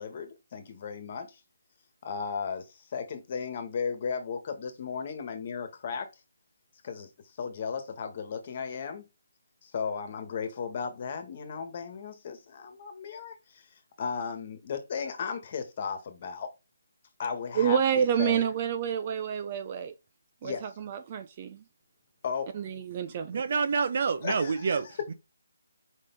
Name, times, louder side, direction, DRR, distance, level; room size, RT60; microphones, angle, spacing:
voice 1, 0.0-1.4 2.0-6.1 6.8-7.1 7.4-9.0 9.6-13.7 14.0-16.5 17.2-18.5 20.4-20.7 22.2-22.5 24.2-24.8, left 6 dB, 40° left, 1.5 m, -35 dB
voice 2, 17.6-19.9 20.4-21.6 22.5-23.2, right 8 dB, 30° right, 0.6 m, -28 dB
voice 3, 23.3-25.1, right 5 dB, 50° right, 1.0 m, -28 dB
5.1 x 4.2 x 5.2 m
figure-of-eight pair, 160°, 0 cm